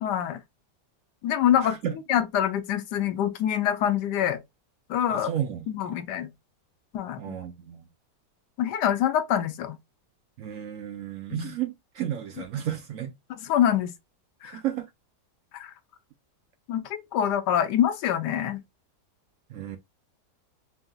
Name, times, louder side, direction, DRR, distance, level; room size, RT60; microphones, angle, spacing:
voice 1, 0.0-0.4 1.2-1.8 2.1-4.4 4.9-5.3 5.7-6.3 6.9-7.4 8.6-9.8 11.3-11.5 13.3-13.9 14.4-14.6 15.5-15.7 16.7-18.6, left 10 dB, 85° left, 1.2 m, -25 dB
voice 2, 1.6-2.0 5.1-6.0 7.2-7.9 10.4-13.1 14.4-14.9 19.5-19.8, right 10 dB, 70° right, 0.8 m, -33 dB
5.5 x 2.7 x 2.3 m
omnidirectional pair, 1.8 m